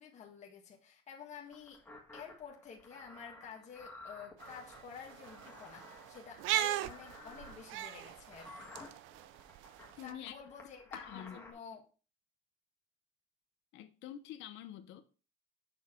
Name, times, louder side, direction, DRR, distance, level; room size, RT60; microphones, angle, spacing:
voice 1, 0.0-1.8 2.1-8.7 10.0-11.8, left 7 dB, 35° left, 1.5 m, -50 dB
sound 1, 1.5-11.5, left 2 dB, 10° left, 1.7 m, -54 dB
sound 2, 4.4-10.1, right 13 dB, 70° right, 0.6 m, -39 dB
voice 2, 10.0-10.3 10.9-11.4 13.7-15.0, left 11 dB, 65° left, 0.9 m, -47 dB
7.2 x 5.8 x 4.5 m
cardioid pair, 150°, 21 cm